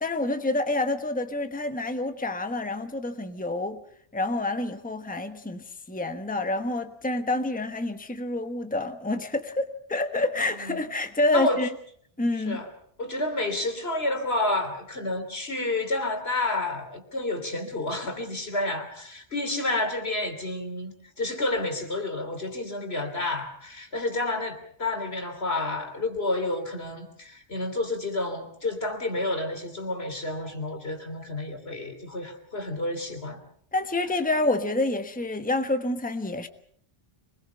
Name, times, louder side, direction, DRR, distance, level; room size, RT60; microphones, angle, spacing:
voice 1, 0.0-3.8 4.1-11.7 12.2-12.6 33.7-36.5, left 2 dB, 10° left, 1.2 m, -28 dB
voice 2, 13.0-33.4, left 2 dB, 80° left, 3.5 m, -30 dB
26.5 x 21.0 x 5.7 m
omnidirectional pair, 1.0 m